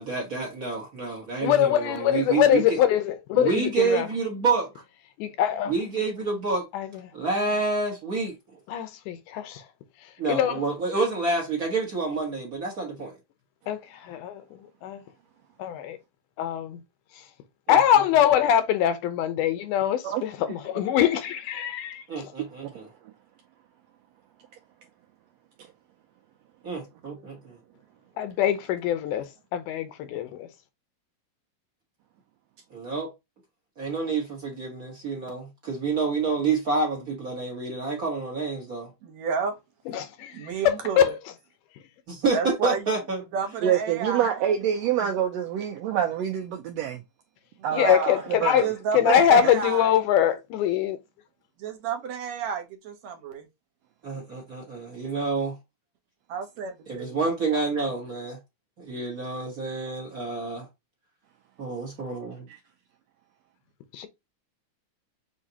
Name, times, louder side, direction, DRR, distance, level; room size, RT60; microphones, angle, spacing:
voice 1, 0.0-2.8 3.4-4.7 5.7-6.6 7.1-8.4 10.2-13.1 17.7-17.8 22.1-22.9 26.6-27.6 32.7-33.1 33.8-38.9 42.1-43.2 48.9-49.0 54.0-55.6 56.9-58.4 58.8-60.7 61.6-62.3, right 4 dB, 50° right, 1.1 m, -28 dB
voice 2, 1.4-4.1 5.2-5.7 6.7-6.9 8.7-9.6 10.3-10.6 13.7-14.4 14.8-15.0 15.6-16.0 16.4-16.8 17.7-22.0 28.2-30.5 39.9-41.1 47.7-48.7 48.9-51.0 64.0-64.1, left 10 dB, 85° left, 2.3 m, -23 dB
voice 3, 39.0-39.6 40.3-41.2 42.3-42.9 43.3-44.4 47.6-48.2 48.6-50.0 50.3-50.4 51.6-53.5 56.3-57.2, right 6 dB, 70° right, 2.1 m, -31 dB
voice 4, 43.6-47.0 47.6-48.7 49.1-49.5, right 9 dB, 85° right, 1.5 m, -26 dB
6.5 x 2.7 x 2.8 m
omnidirectional pair, 3.6 m